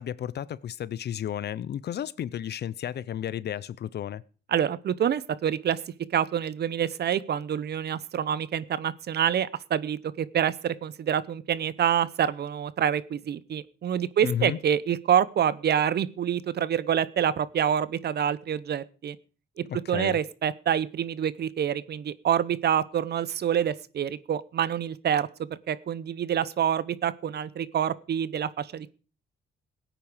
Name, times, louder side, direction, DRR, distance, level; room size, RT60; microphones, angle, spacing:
voice 1, 0.0-4.2 14.2-14.6 19.7-20.2, left 10 dB, 55° left, 0.7 m, -32 dB
voice 2, 4.5-5.8 6.1-19.2 19.6-28.9, right 9 dB, 55° right, 0.9 m, -27 dB
17.0 x 9.1 x 5.0 m
cardioid pair, 90°, 20 cm